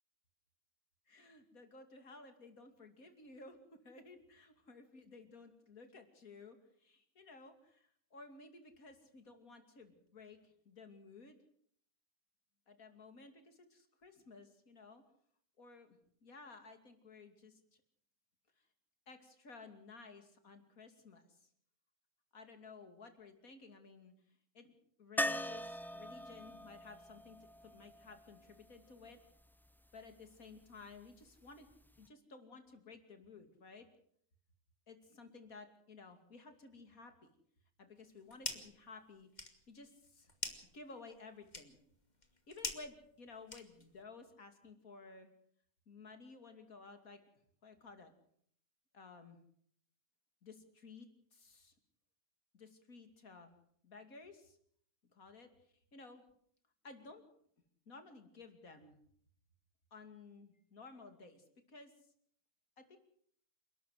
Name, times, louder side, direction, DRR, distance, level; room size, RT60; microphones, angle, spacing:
voice 1, 1.1-3.6 3.8-11.4 12.7-15.0 15.6-17.8 18.6-18.7 19.1-21.5 22.3-24.1 24.5-24.7 25.0-27.4 27.6-29.2 29.9-31.7 32.0-33.9 34.9-37.1 37.8-39.3 39.7-40.3 40.7-41.8 42.5-45.3 45.9-47.2 47.6-48.1 48.9-49.4 50.4-51.7 52.5-53.5 53.8-54.6 55.1-55.5 55.9-56.2 56.8-57.2 57.9-59.0 59.9-61.9 62.8-63.0, left 3 dB, 80° left, 7 dB, 3.1 m, -55 dB
sound 1, 25.2-29.1 31.7-31.8 32.1-32.2, equal, 5° left, 0.3 m, -41 dB
sound 2, 38.0-38.8 39.1-44.0, left 2 dB, 30° left, 2.5 m, -46 dB
28.5 x 12.5 x 7.9 m, 0.64 s
omnidirectional pair, 1.5 m